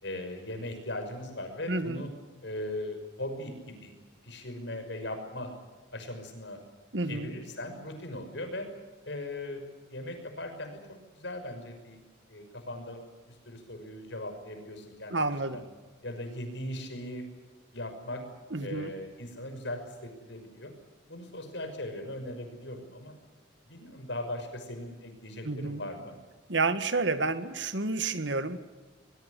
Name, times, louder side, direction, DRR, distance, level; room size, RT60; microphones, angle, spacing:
voice 1, 0.0-2.1 2.4-3.9 4.2-5.5 5.9-6.6 7.1-8.7 9.0-9.6 9.9-12.0 12.3-15.6 16.0-17.3 17.7-18.2 18.6-20.7 21.1-23.1 23.7-26.1, left 1 dB, 65° left, 6 dB, 5.9 m, -39 dB
voice 2, 1.7-2.0 6.9-7.3 15.1-15.6 18.5-18.9 25.4-25.8 26.5-28.6, right 3 dB, 65° right, 11 dB, 1.7 m, -30 dB
22.5 x 22.0 x 8.2 m, 1.3 s
head